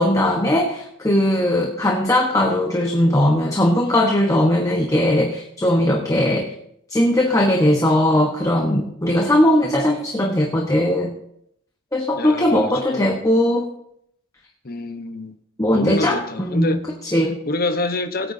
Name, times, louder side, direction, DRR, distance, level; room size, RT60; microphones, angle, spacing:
voice 1, 0.0-6.5 6.9-11.1 11.9-13.6 15.6-17.4, left 1 dB, 15° left, 1.1 m, -19 dB
voice 2, 12.2-13.1 14.6-15.4 15.7-16.8 17.5-18.3, left 2 dB, 45° left, 1.0 m, -26 dB
21.0 x 9.1 x 2.7 m
head